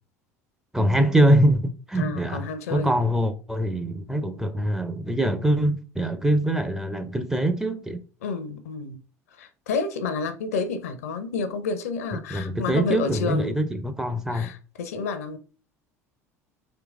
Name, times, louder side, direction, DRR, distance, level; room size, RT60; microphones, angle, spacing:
voice 1, 0.7-8.0 12.3-14.5, right 1 dB, 5° right, 0.5 m, -23 dB
voice 2, 1.9-2.9 8.2-9.0 9.4-13.6 14.3-15.4, left 4 dB, 70° left, 0.6 m, -30 dB
3.8 x 2.9 x 3.4 m
figure-of-eight pair, 65°, 8 cm